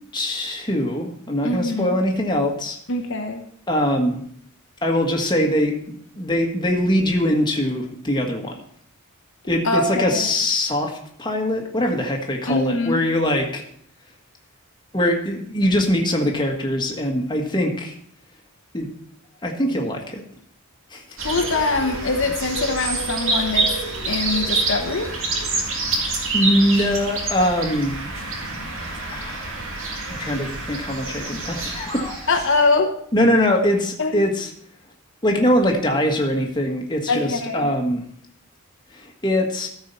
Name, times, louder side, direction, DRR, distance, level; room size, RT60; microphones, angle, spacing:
voice 1, 0.1-2.8 3.7-4.2 4.8-8.5 9.5-13.6 14.9-17.9 18.7-18.9 19.4-20.2 20.9-21.0 26.3-28.0 29.1-29.6 30.2-32.2 33.1-34.5 35.2-38.0 38.9-39.7, left 1 dB, 20° left, 1 dB, 1.5 m, -22 dB
voice 2, 1.4-2.0 2.9-3.4 9.6-10.3 12.5-13.0 21.2-23.7 24.1-25.1 32.3-33.0 34.0-34.2 37.1-37.7, left 3 dB, 65° left, 3 dB, 1.1 m, -23 dB
sound 1, 21.2-32.7, right 3 dB, 65° right, 2.2 m, -27 dB
13.5 x 4.8 x 5.6 m, 0.64 s
head